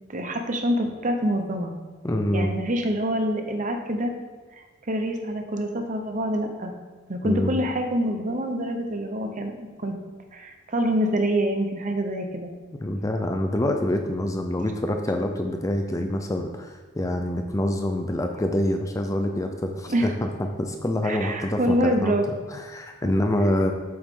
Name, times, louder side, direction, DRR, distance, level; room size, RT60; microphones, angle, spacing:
voice 1, 0.1-1.7 2.3-4.1 4.9-6.7 7.1-9.9 10.3-12.5 19.9-20.1 21.0-22.3 23.0-23.1, equal, 40° right, 4 dB, 0.9 m, -26 dB
voice 2, 2.0-2.5 7.2-7.6 12.8-20.3 20.6-22.1 22.5-23.7, left 1 dB, 15° left, 4 dB, 0.5 m, -26 dB
8.0 x 6.2 x 3.8 m, 1.4 s
head